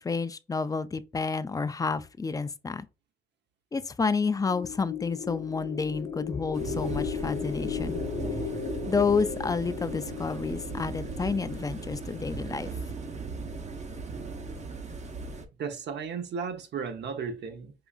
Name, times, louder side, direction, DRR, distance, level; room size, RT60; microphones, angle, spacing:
voice 1, 0.0-2.9 3.7-8.0 8.9-12.7, left 4 dB, 20° left, 0.4 m, -30 dB
sound 1, 4.3-12.7, left 8 dB, 65° left, 0.8 m, -36 dB
sound 2, 6.5-15.4, right 4 dB, 35° right, 0.9 m, -37 dB
voice 2, 15.6-17.7, right 6 dB, 60° right, 0.9 m, -34 dB
4.9 x 2.5 x 2.4 m
cardioid pair, 90°, 20 cm